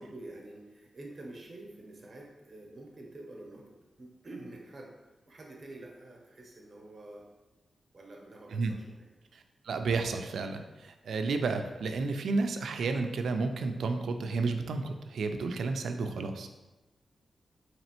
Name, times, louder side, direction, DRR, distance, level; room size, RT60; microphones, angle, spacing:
voice 1, 0.0-3.7 4.0-5.0 5.3-7.3 7.9-9.0, right 2 dB, 40° right, 0 dB, 0.7 m, -47 dB
voice 2, 9.3-16.5, right 3 dB, 85° right, 7 dB, 0.3 m, -32 dB
4.1 x 2.9 x 2.9 m, 1.1 s
wide cardioid pair, 150°, 0 cm